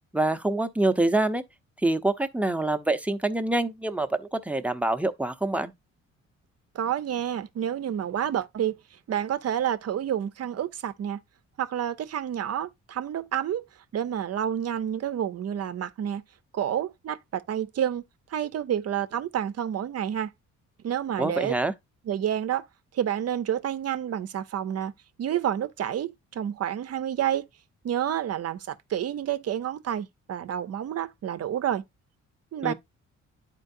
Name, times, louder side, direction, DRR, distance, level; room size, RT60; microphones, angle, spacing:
voice 1, 0.1-1.4 1.8-5.7 21.2-21.7 32.6-32.7, right 2 dB, 5° right, 0.8 m, -26 dB
voice 2, 6.7-8.8 9.1-11.2 11.6-13.6 13.9-16.2 16.5-18.0 18.3-20.3 20.8-21.6 22.1-22.7 22.9-24.9 25.2-27.5 27.8-31.8 32.5-32.7, right 10 dB, 55° right, 0.7 m, -29 dB
11.0 x 4.6 x 2.6 m
cardioid pair, 90°, 30 cm